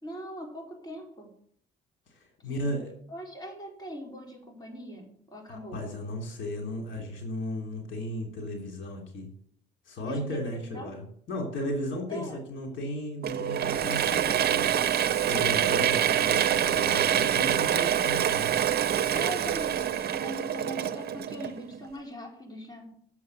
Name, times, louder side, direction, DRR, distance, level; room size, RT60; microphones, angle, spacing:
voice 1, 0.0-1.3 2.4-2.8 3.1-5.8 10.1-10.9 12.1-12.4 16.8-17.1 19.1-22.9, equal, 20° left, 0 dB, 4.4 m, -41 dB
voice 2, 2.4-2.9 5.5-9.3 9.9-14.7 15.3-18.5, left 1 dB, 75° left, 2 dB, 3.0 m, -35 dB
Mechanisms / Drill, 13.2-21.8, right 10 dB, 55° right, 0.7 m, -26 dB
8.4 x 7.3 x 7.8 m, 0.63 s
cardioid pair, 90°, 20 cm